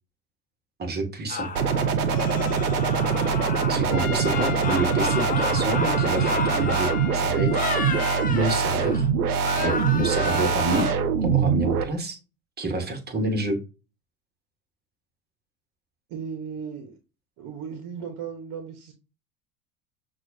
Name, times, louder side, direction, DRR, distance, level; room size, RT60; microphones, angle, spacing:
voice 1, 0.8-1.5 3.7-7.7 8.3-9.1 9.6-10.9 11.2-12.2 12.6-13.6, right 2 dB, 20° right, 4 dB, 1.1 m, -28 dB
sound 1, 1.3-3.9 4.2-7.1 7.5-9.1 9.4-10.9, left 4 dB, 20° left, 0.7 m, -31 dB
sound 2, 1.6-11.8, right 6 dB, 80° right, 0.7 m, -24 dB
Trumpet, 3.9-8.3, left 9 dB, 70° left, 0.6 m, -36 dB
voice 2, 16.1-16.9 17.4-18.9, right 6 dB, 45° right, 5 dB, 0.9 m, -36 dB
6.0 x 2.4 x 2.7 m, 0.31 s
figure-of-eight pair, 75°, 44 cm